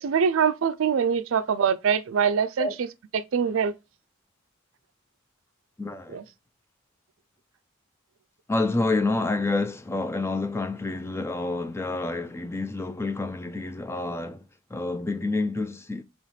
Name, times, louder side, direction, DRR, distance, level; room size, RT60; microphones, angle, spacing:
voice 1, 0.0-2.7 3.1-3.7 6.1-6.2, right 7 dB, 65° right, 0.4 m, -23 dB
voice 2, 5.8-6.2 8.5-14.4 14.7-16.0, left 2 dB, 10° left, 0.4 m, -28 dB
5.6 x 3.0 x 3.2 m
head